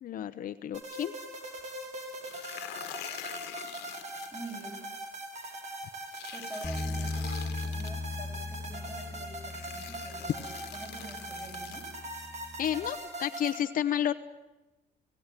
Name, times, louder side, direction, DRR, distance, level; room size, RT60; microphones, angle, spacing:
voice 1, 0.0-1.1 12.6-14.1, left 10 dB, 55° left, 9 dB, 1.0 m, -31 dB
sound 1, 0.7-13.6, right 1 dB, 45° right, 6.1 m, -41 dB
sound 2, 2.1-4.6 6.1-7.9 8.9-9.0 9.5-11.9, left 14 dB, 85° left, 1.6 m, -45 dB
voice 2, 4.3-4.8 6.3-11.9, right 2 dB, 15° right, 1 dB, 7.7 m, -46 dB
Bass guitar, 6.6-12.9, left 2 dB, 5° left, 4.7 m, -39 dB
29.5 x 17.0 x 9.2 m, 1.1 s
cardioid pair, 110°, 17 cm